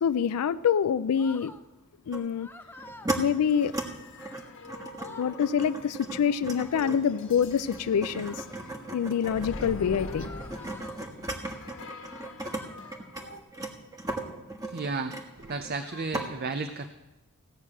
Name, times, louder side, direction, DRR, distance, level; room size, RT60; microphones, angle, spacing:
voice 1, 0.0-1.5 2.1-2.5 3.2-3.7 5.2-8.4 8.9-10.3, left 7 dB, 90° left, 14 dB, 0.4 m, -26 dB
sound 1, 1.2-1.6 2.3-3.1 4.5-4.6 4.8-5.4 6.5-7.0 7.9-8.6 10.1-11.0 12.1-13.1 14.0-14.4 15.3-16.0, left 2 dB, 10° left, 0.7 m, -49 dB
sound 2, 2.1-2.3 2.8-3.2 3.6-3.9 4.2-12.6 12.9-15.8 16.1-16.3, right 1 dB, 15° right, 1.4 m, -36 dB
sound 3, 3.5-13.4, left 2 dB, 55° left, 1.4 m, -44 dB
voice 2, 14.6-16.9, right 3 dB, 45° right, 9 dB, 0.6 m, -33 dB
16.0 x 6.5 x 8.7 m, 1.1 s
head